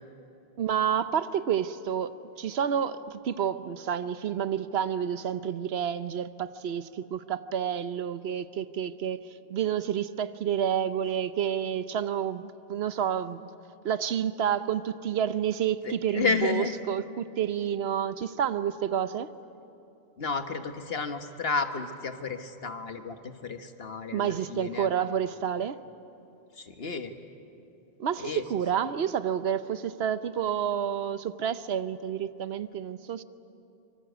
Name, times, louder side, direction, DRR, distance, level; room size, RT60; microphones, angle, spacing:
voice 1, 0.6-13.5 13.8-19.3 24.1-25.8 28.0-33.2, right 8 dB, 85° right, 13 dB, 1.0 m, -29 dB
voice 2, 15.8-16.8 20.2-24.9 26.6-27.1 28.2-28.4, left 4 dB, 70° left, 7 dB, 1.6 m, -32 dB
25.5 x 24.5 x 8.1 m, 2.8 s
omnidirectional pair, 1.0 m